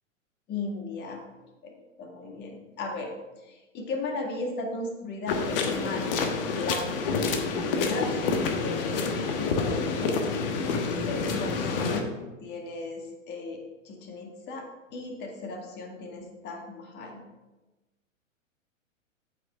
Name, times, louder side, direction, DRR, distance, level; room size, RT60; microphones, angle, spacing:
voice 1, 0.5-1.2 1.6-1.7 2.0-7.4 7.7-10.2 11.1-17.2, left 3 dB, 25° left, 2 dB, 1.8 m, -36 dB
sound 1, 5.3-12.0, left 4 dB, 45° left, 1.2 m, -28 dB
9.1 x 8.2 x 3.5 m, 1.1 s
figure-of-eight pair, 105°, 39 cm